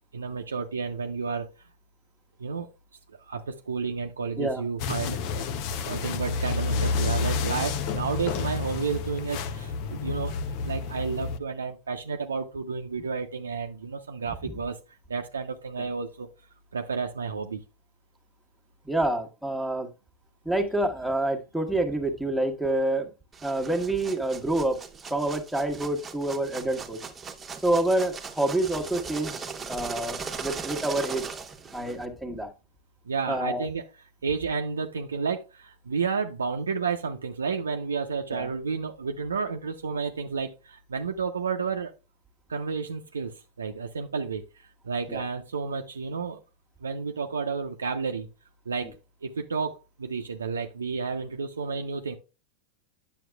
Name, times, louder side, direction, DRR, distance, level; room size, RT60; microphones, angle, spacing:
voice 1, 0.1-1.5 2.4-2.7 3.1-5.2 5.9-10.4 10.6-14.8 15.1-16.3 16.7-17.6 33.0-33.8 34.2-41.9 42.5-46.4 46.8-48.3 48.7-52.2, right 5 dB, 85° right, 4 dB, 0.6 m, -31 dB
sound 1, 4.8-11.4, left 4 dB, 50° left, 0.7 m, -30 dB
voice 2, 18.8-19.9 20.4-23.1 23.4-24.8 25.1-27.0 27.6-31.2 31.7-32.5 33.3-33.6 38.3-38.5 45.1-45.2, right 1 dB, ahead, 2 dB, 1.3 m, -27 dB
sound 2, 23.3-32.1, right 5 dB, 20° right, 1.0 m, -39 dB
9.2 x 7.1 x 2.3 m, 0.29 s
hypercardioid pair, 95°, 0 cm